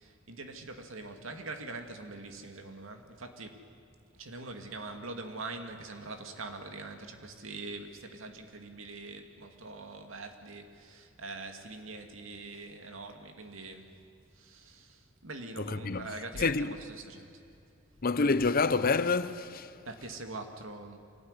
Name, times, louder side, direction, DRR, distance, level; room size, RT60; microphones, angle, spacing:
voice 1, 0.0-3.6 4.1-14.0 14.3-17.3 19.8-21.0, right 3 dB, 80° right, 2.4 m, -43 dB
voice 2, 15.6-16.1 16.4-16.7 18.0-19.7, left 4 dB, 45° left, 0.8 m, -27 dB
25.0 x 18.0 x 9.9 m
head